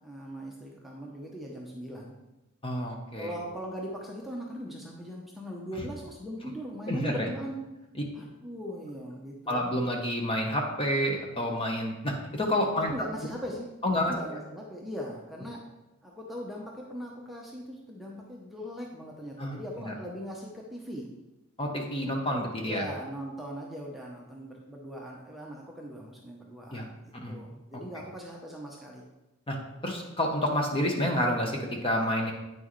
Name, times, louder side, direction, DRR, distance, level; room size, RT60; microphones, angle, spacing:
voice 1, 0.0-2.1 3.1-7.6 8.1-9.6 12.9-13.7 14.1-15.6 16.0-21.1 22.6-29.0, equal, ahead, -3 dB, 0.8 m, -40 dB
voice 2, 2.6-3.4 6.9-7.3 9.5-12.9 13.8-14.4 19.4-19.9 21.6-22.9 26.7-26.9 27.1-27.4 29.5-29.6 29.8-32.3, equal, 25° left, 1 dB, 1.0 m, -29 dB
8.8 x 6.1 x 3.2 m, 0.99 s
head